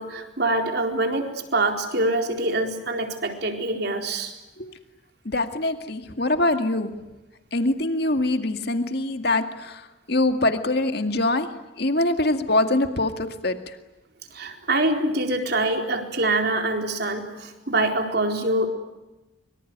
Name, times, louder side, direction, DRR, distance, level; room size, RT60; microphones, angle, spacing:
voice 1, 0.0-4.3 14.3-18.7, right 2 dB, 55° right, 4 dB, 4.3 m, -25 dB
voice 2, 5.3-6.9 7.5-9.8 10.1-11.5 11.8-13.6, left 2 dB, 55° left, 7 dB, 2.2 m, -23 dB
25.5 x 24.5 x 9.5 m, 1.0 s
head